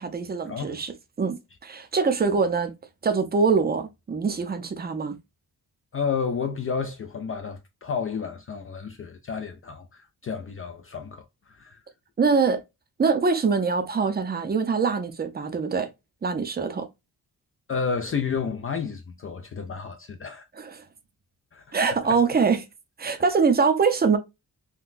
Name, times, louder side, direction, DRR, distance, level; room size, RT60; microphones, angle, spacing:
voice 1, 0.0-1.4 1.6-2.7 3.0-5.2 12.2-12.6 13.0-15.9 16.2-16.9 20.6-20.8 21.7-22.6 23.0-24.2, right 5 dB, 25° right, 0.5 m, -23 dB
voice 2, 5.9-11.8 17.7-20.5 21.5-21.6 22.1-22.2, left 6 dB, 35° left, 0.4 m, -31 dB
3.8 x 2.2 x 2.5 m
wide cardioid pair, 135°, 38 cm